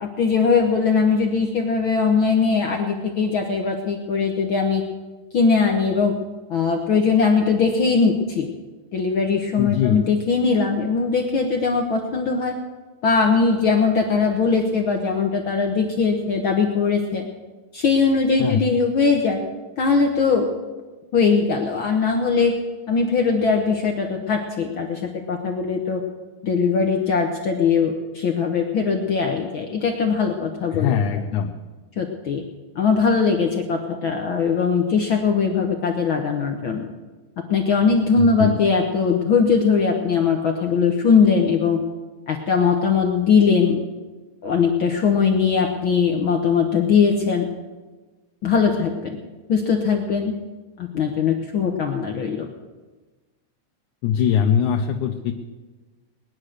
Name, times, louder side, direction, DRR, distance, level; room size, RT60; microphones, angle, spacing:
voice 1, 0.0-4.8 5.3-6.1 6.5-8.5 8.9-12.5 13.0-17.2 17.7-19.4 19.8-20.5 21.1-22.5 22.9-25.0 25.3-26.0 26.4-31.0 32.0-32.4 32.7-36.9 37.5-41.8 42.3-43.8 44.4-47.4 48.4-49.2 49.5-50.4 50.8-52.5, left 5 dB, 60° left, 3 dB, 1.4 m, -20 dB
voice 2, 9.6-10.0 18.4-18.6 30.7-31.5 38.2-38.6 54.0-55.3, left 8 dB, 80° left, 3 dB, 2.3 m, -21 dB
20.0 x 10.5 x 6.5 m, 1.3 s
omnidirectional pair, 3.5 m